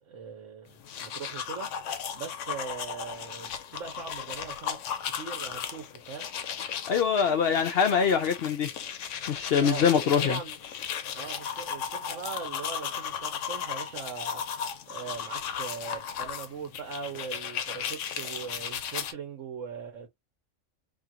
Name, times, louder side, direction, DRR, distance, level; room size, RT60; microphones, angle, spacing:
voice 1, 0.0-1.9 2.1-4.8 5.2-6.3 9.6-10.6 11.1-14.6 14.9-20.1, right 6 dB, 75° right, 1.2 m, -40 dB
sound 1, 0.7-19.1, left 8 dB, 80° left, 0.9 m, -36 dB
voice 2, 6.9-8.7 9.3-10.4, left 7 dB, 60° left, 0.7 m, -24 dB
2.8 x 2.5 x 2.7 m
omnidirectional pair, 1.3 m